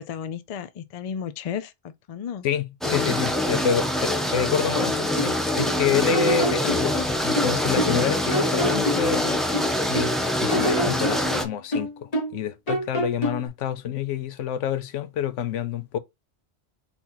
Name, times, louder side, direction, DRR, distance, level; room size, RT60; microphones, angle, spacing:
voice 1, 0.0-2.5 2.9-3.1 10.5-10.8, left 8 dB, 55° left, 0.4 m, -33 dB
voice 2, 2.4-7.0 7.2-9.4 9.9-10.1 10.4-16.0, left 8 dB, 85° left, 1.0 m, -27 dB
sound 1, 2.8-11.4, left 1 dB, ahead, 0.5 m, -25 dB
sound 2, 4.8-5.8 6.1-8.0 8.3-10.1 10.5-12.4 12.7-13.5, equal, 30° left, 1.3 m, -28 dB
4.2 x 2.9 x 3.8 m
omnidirectional pair, 1.2 m